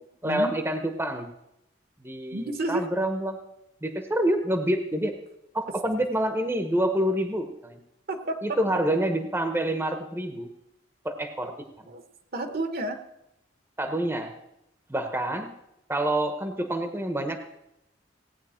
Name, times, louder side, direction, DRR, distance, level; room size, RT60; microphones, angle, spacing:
voice 1, 0.2-1.3 2.0-3.4 3.8-5.1 5.5-7.8 8.4-10.5 11.0-11.9 13.8-14.3 14.9-15.5 15.9-17.4, right 1 dB, 10° right, 6 dB, 1.0 m, -27 dB
voice 2, 2.3-2.9 8.1-8.7 11.4-11.5 11.9-12.0 12.3-13.0, right 2 dB, 55° right, 7 dB, 1.2 m, -31 dB
17.5 x 9.2 x 4.4 m, 0.85 s
head